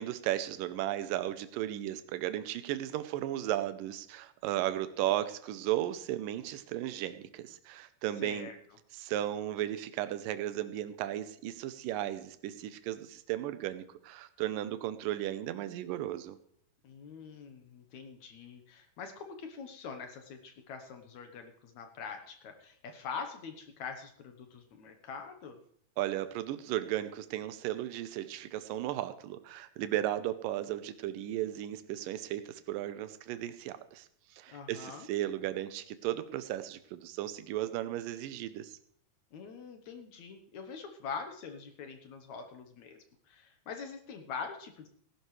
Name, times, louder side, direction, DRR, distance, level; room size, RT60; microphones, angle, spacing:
voice 1, 0.0-8.5 8.9-16.4 26.0-38.8, right 13 dB, 75° right, 12 dB, 2.1 m, -35 dB
voice 2, 8.2-8.6 16.8-25.6 34.5-35.1 39.3-44.9, left 5 dB, 65° left, 6 dB, 1.9 m, -44 dB
18.5 x 11.5 x 3.2 m, 0.64 s
omnidirectional pair, 4.5 m